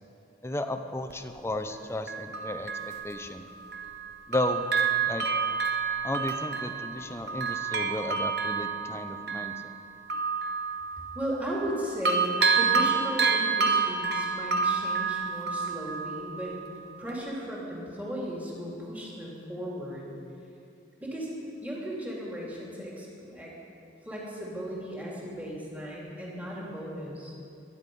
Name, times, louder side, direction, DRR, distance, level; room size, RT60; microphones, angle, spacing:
voice 1, 0.4-3.5 4.3-4.7 5.1-5.3 6.0-9.7, left 1 dB, 15° left, 8 dB, 0.7 m, -34 dB
Bell, 1.1-1.2 2.1-4.0 4.3-11.8 12.1-16.7 17.1-17.2, right 5 dB, 60° right, 1.2 m, -29 dB
voice 2, 11.1-16.5 17.0-20.1 21.0-21.3 21.6-23.5 24.0-27.3, equal, 10° right, -5 dB, 2.7 m, -36 dB
22.5 x 10.0 x 5.4 m, 2.7 s
head